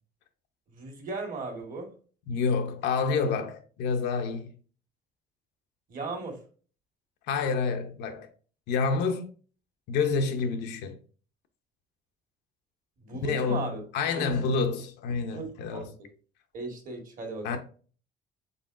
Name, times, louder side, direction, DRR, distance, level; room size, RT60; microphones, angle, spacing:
voice 1, 0.7-1.9 5.9-6.4 13.0-13.8 14.1-14.3 15.3-16.1 16.5-17.6, right 3 dB, 55° right, 1.5 m, -37 dB
voice 2, 2.3-4.5 7.3-8.3 8.7-9.3 9.9-11.0 13.2-15.9 17.4-17.6, left 5 dB, 80° left, 0.7 m, -28 dB
4.0 x 3.6 x 2.4 m
cardioid pair, 110°, 17 cm